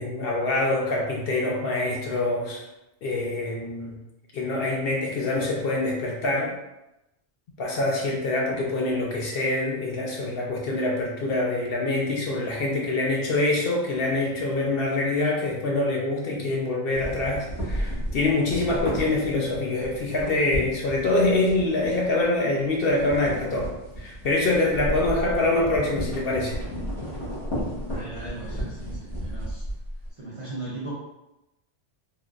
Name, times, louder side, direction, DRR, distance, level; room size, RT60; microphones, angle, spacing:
voice 1, 0.0-2.6 3.0-4.0 4.3-6.5 7.6-26.6, left 2 dB, 60° left, -2 dB, 0.7 m, -25 dB
sound 1, 16.9-22.4 22.7-30.1, equal, 25° left, 1.2 m, -33 dB
voice 2, 27.8-29.6 30.1-30.9, right 2 dB, 35° right, -7 dB, 0.6 m, -38 dB
3.7 x 2.5 x 2.3 m, 0.94 s
omnidirectional pair, 1.2 m